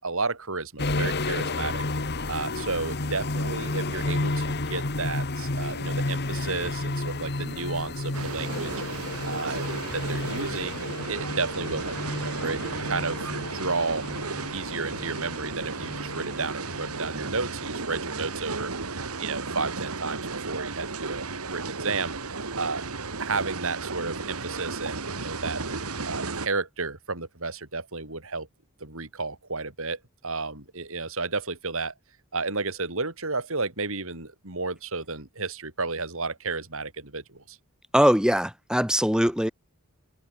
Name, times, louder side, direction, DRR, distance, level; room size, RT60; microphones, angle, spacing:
voice 1, 0.0-1.8 2.3-8.7 9.2-13.2 13.5-14.1 14.5-18.7 19.2-22.2 22.5-22.9 23.2-25.7 26.0-28.5 28.8-31.9 32.3-37.6, right 3 dB, 65° right, 5.3 m, -32 dB
sound 1, 0.8-17.7 17.9-18.1, left 2 dB, 50° left, 1.9 m, -32 dB
sound 2, 8.1-26.5, right 4 dB, 85° right, 2.4 m, -34 dB
voice 2, 37.9-39.5, equal, 5° right, 4.6 m, -21 dB
open air
head